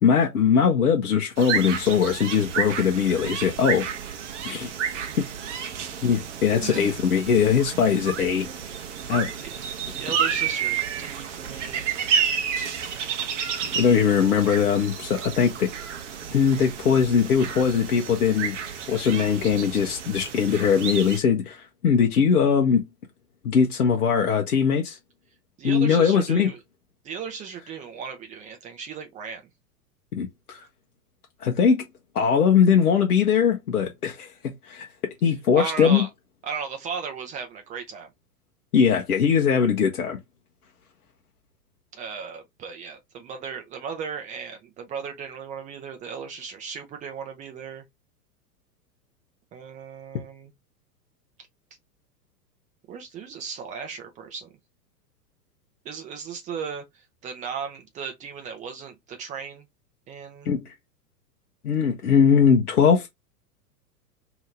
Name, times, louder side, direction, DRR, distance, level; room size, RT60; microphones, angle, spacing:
voice 1, 0.0-3.9 4.4-4.7 5.2-5.3 6.0-8.5 9.1-9.3 13.7-15.7 16.3-18.5 18.9-22.8 23.4-25.0 25.6-26.5 30.1-30.6 31.4-31.8 32.1-34.3 34.7-34.9 35.2-36.1 38.7-40.2 60.5-60.6 61.6-63.1, left 7 dB, 65° left, 0.9 m, -21 dB
sound 1, 1.4-21.2, right 7 dB, 50° right, 0.8 m, -31 dB
voice 2, 6.6-7.1 9.1-9.6 9.9-12.0 25.6-26.6 27.0-29.4 35.5-36.1 36.4-38.1 41.9-47.8 49.5-50.5 52.9-54.6 55.8-59.7 60.1-60.5, right 6 dB, 15° right, 0.6 m, -36 dB
2.8 x 2.7 x 3.2 m
figure-of-eight pair, 100°, 48 cm